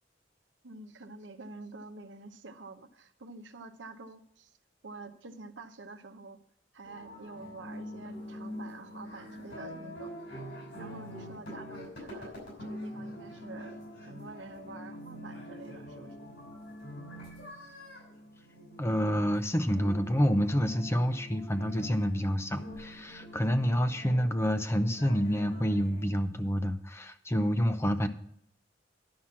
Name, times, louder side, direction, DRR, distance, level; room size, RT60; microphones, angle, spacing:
voice 1, 0.6-4.6 4.8-6.4 6.7-10.4 10.8-16.2, right 3 dB, 75° right, 7 dB, 0.9 m, -48 dB
sound 1, 6.8-26.1, left 1 dB, 80° left, 5.7 m, -44 dB
voice 2, 18.8-28.1, equal, 15° left, 9 dB, 0.6 m, -28 dB
11.5 x 6.0 x 7.2 m, 0.68 s
head